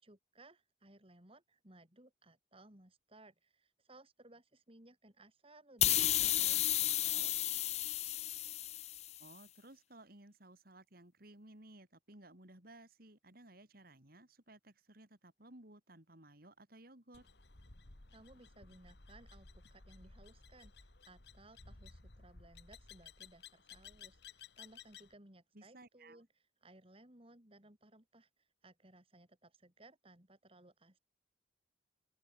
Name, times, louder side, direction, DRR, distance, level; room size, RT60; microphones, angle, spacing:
voice 1, 0.0-6.7 7.0-7.4 18.1-26.3 26.6-31.0, right 2 dB, 30° right, 3.7 m, -61 dB
sound 1, 5.8-9.2, left 13 dB, 35° left, 0.5 m, -32 dB
voice 2, 9.2-17.3 25.5-26.2, right 1 dB, 55° right, 4.1 m, -58 dB
sound 2, 17.1-25.1, left 5 dB, 65° left, 2.2 m, -57 dB
open air
head